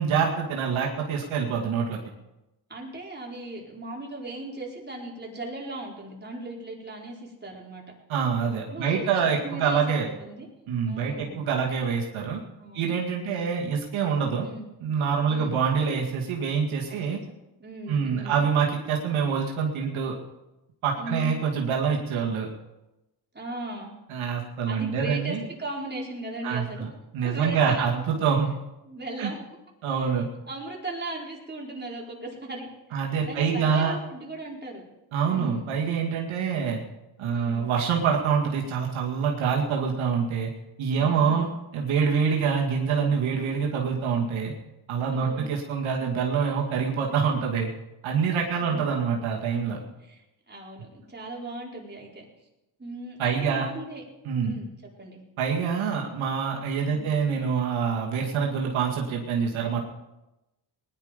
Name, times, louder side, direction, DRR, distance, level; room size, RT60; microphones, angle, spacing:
voice 1, 0.0-2.0 8.1-10.1 10.7-12.4 12.7-14.5 14.8-17.2 17.9-20.2 20.8-22.5 24.1-25.4 26.4-26.9 27.1-28.5 29.2-29.3 29.8-30.3 32.9-33.9 35.1-36.8 37.2-40.5 40.8-41.5 41.7-44.5 44.9-47.7 48.0-49.8 53.2-53.7 54.3-54.6 55.4-59.8, right 6 dB, 80° right, -1 dB, 2.4 m, -26 dB
voice 2, 2.7-7.8 8.7-10.5 10.9-11.4 12.6-12.9 13.2-13.5 14.4-14.7 15.3-15.6 16.9-17.1 17.6-18.4 21.0-21.4 23.3-23.9 24.6-26.9 27.2-28.3 28.8-29.4 30.5-34.9 35.3-35.7 37.3-37.7 40.9-41.5 45.1-45.5 48.6-48.9 50.0-52.2 52.8-54.0 54.4-55.3 56.9-57.1, right 2 dB, 20° right, -2 dB, 4.5 m, -38 dB
19.0 x 11.0 x 5.3 m, 0.97 s
cardioid pair, 80°, 47 cm